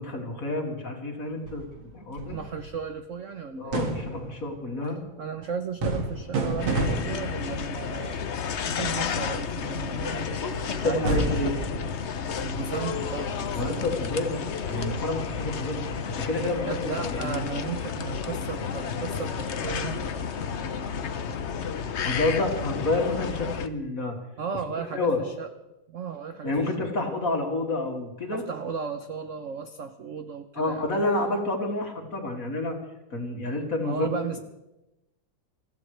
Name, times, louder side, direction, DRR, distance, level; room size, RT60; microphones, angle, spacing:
voice 1, 0.0-2.4 3.6-5.0 10.4-10.5 10.8-11.6 13.5-17.4 22.0-24.2 24.8-25.2 26.4-28.4 30.6-32.8 33.1-34.4, left 2 dB, 40° left, 1 dB, 2.9 m, -29 dB
sound 1, 1.5-2.9 3.7-4.5 5.8-7.7 11.0-12.6, right 2 dB, 85° right, 2.9 m, -30 dB
voice 2, 2.2-3.7 5.2-11.1 12.3-13.9 16.7-20.1 24.4-25.5 25.9-26.9 28.3-30.9 33.8-34.4, right 6 dB, 60° right, 8 dB, 0.8 m, -35 dB
sound 2, 6.6-23.7, left 6 dB, 60° left, 0.7 m, -31 dB
27.5 x 15.5 x 3.3 m, 0.97 s
omnidirectional pair, 2.2 m